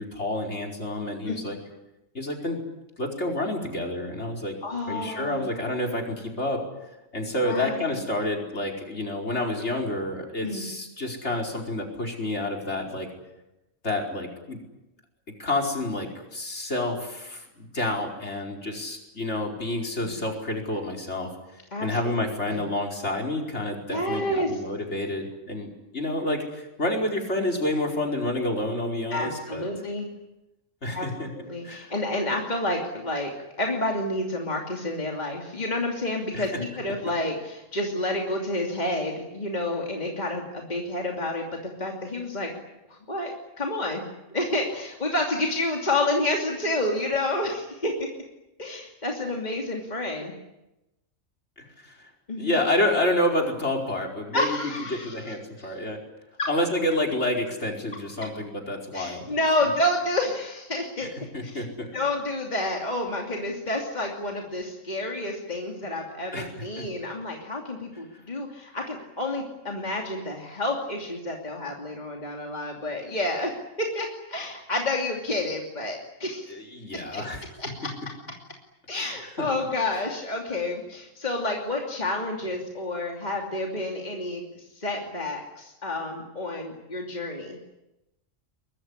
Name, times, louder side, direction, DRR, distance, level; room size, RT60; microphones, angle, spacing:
voice 1, 0.0-1.6 2.1-2.6 3.0-4.6 4.9-6.6 7.1-13.1 13.8-14.6 15.4-29.6 30.8-31.3 31.6-31.9 36.3-36.6 51.6-52.1 52.4-54.6 54.9-56.0 56.5-59.7 61.3-61.9 66.3-66.5 66.8-66.9 76.5-77.5 78.9-79.0 79.4-79.5, left 1 dB, 60° left, 5 dB, 5.2 m, -29 dB
voice 2, 4.6-5.5 7.4-8.0 10.4-10.6 20.0-20.1 21.7-22.0 22.5-22.6 23.9-24.5 29.1-30.1 30.9-31.1 31.3-33.3 33.6-42.5 42.9-44.0 44.3-48.1 48.6-50.3 52.3-52.6 54.3-55.2 55.6-55.7 56.4-56.5 58.9-61.1 61.4-61.7 61.9-76.5 76.9-77.2 77.6-77.9 78.9-87.6, left 1 dB, 35° left, 0 dB, 3.0 m, -29 dB
23.5 x 22.0 x 9.8 m, 0.95 s
omnidirectional pair, 1.3 m